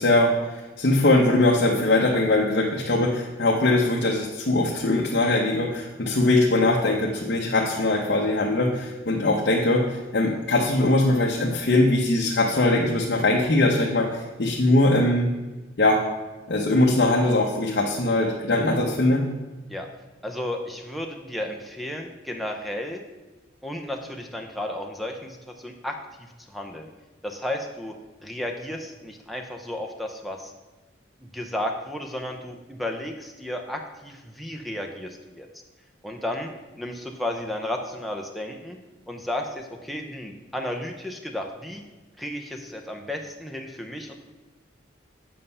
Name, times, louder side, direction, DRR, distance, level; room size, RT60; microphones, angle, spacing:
voice 1, 0.0-15.3 15.8-16.0 16.5-19.3, left 2 dB, 55° left, -2 dB, 0.8 m, -21 dB
voice 2, 20.2-23.0 23.6-26.9 27.2-28.0 28.2-30.5 31.2-35.5 36.0-36.5 36.8-38.8 39.1-41.8 42.2-44.2, left 1 dB, ahead, 1 dB, 0.6 m, -33 dB
7.6 x 5.5 x 5.5 m, 1.2 s
head